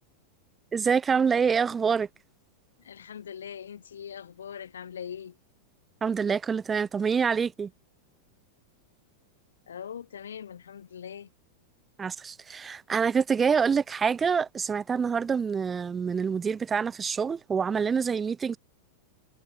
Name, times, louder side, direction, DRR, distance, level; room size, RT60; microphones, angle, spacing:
voice 1, 0.7-2.1 6.0-7.7 12.0-18.6, right 6 dB, 20° right, 0.5 m, -26 dB
voice 2, 2.8-5.4 9.7-11.3, left 8 dB, 65° left, 4.5 m, -41 dB
figure-of-eight pair, 90°, 0 cm